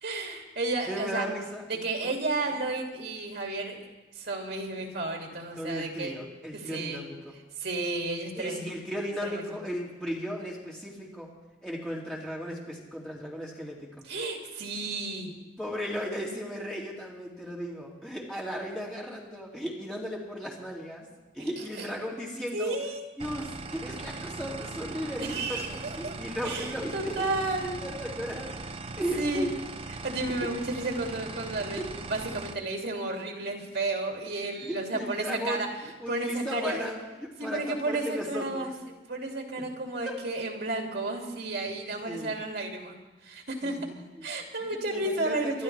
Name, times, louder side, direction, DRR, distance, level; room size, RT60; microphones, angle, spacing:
voice 1, 0.0-1.2 1.7-3.8 4.2-6.2 6.5-7.0 7.6-8.8 9.2-9.6 14.0-15.3 21.8-21.9 22.5-23.0 25.2-26.1 26.4-27.7 29.2-29.5 30.0-35.7 36.1-36.9 37.4-43.0 43.2-43.8 44.2-45.6, right 2 dB, 70° right, 1 dB, 2.5 m, -32 dB
voice 2, 0.9-2.1 2.5-2.6 5.6-7.3 8.4-11.3 11.6-13.9 15.6-21.1 21.3-22.7 23.2-27.2 27.8-28.6 29.0-29.5 30.4-30.5 34.6-35.7 36.0-38.7 42.0-42.4 43.6-44.3 44.6-45.6, equal, 5° left, -4 dB, 2.6 m, -36 dB
sound 1, 23.2-32.5, right 3 dB, 30° right, 0.6 m, -40 dB
24.5 x 12.0 x 3.4 m, 1.1 s
head